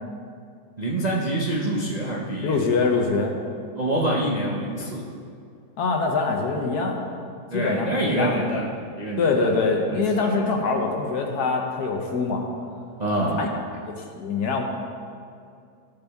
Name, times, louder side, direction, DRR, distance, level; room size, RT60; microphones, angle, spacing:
voice 1, 0.8-2.6 3.8-5.0 7.5-10.5 13.0-13.5, right 1 dB, 40° right, -5 dB, 0.6 m, -26 dB
voice 2, 2.4-3.3 5.8-7.0 7.5-8.4 9.2-12.5 13.4-13.5 14.1-14.6, left 4 dB, 70° left, 2 dB, 1.4 m, -24 dB
13.5 x 5.4 x 3.5 m, 2.3 s
omnidirectional pair, 1.7 m